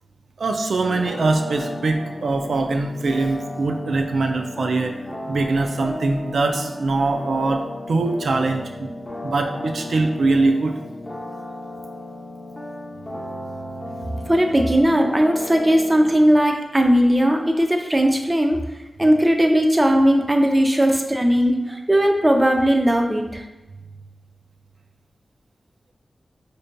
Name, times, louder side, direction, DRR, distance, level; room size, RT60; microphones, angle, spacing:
voice 1, 0.4-4.9 5.3-10.7, right 3 dB, 80° right, 4 dB, 0.3 m, -22 dB
sound 1, 0.9-16.1, left 1 dB, 25° left, 0.8 m, -35 dB
voice 2, 14.3-18.6 19.0-23.4, equal, 20° right, 3 dB, 0.5 m, -18 dB
5.0 x 2.6 x 2.2 m, 1.1 s
cardioid pair, 55°, 0 cm